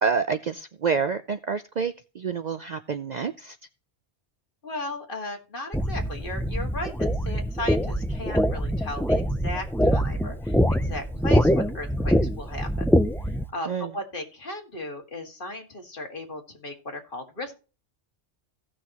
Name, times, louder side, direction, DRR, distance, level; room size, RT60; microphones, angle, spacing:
voice 1, 0.0-3.6 13.7-13.9, right 5 dB, 50° right, 10 dB, 0.6 m, -28 dB
voice 2, 4.6-12.9 13.2-17.5, left 1 dB, 50° left, 3 dB, 2.3 m, -36 dB
sound 1, 5.7-13.4, equal, 5° left, 0.3 m, -24 dB
16.5 x 6.2 x 2.9 m, 0.33 s
omnidirectional pair, 1.2 m